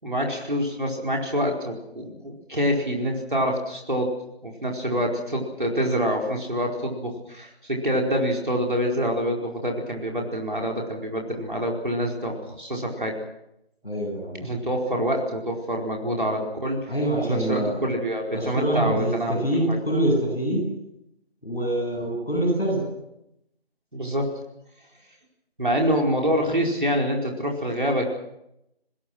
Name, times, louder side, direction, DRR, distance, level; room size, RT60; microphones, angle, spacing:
voice 1, 0.0-4.2 4.4-13.2 14.4-16.8 17.2-19.8 23.9-24.3 25.6-28.1, equal, 50° right, 0 dB, 4.7 m, -26 dB
voice 2, 13.8-14.4 16.9-17.7 18.3-20.6 21.4-22.8, right 1 dB, ahead, -20 dB, 6.5 m, -25 dB
27.0 x 20.5 x 6.2 m, 0.82 s
figure-of-eight pair, 180°, 32 cm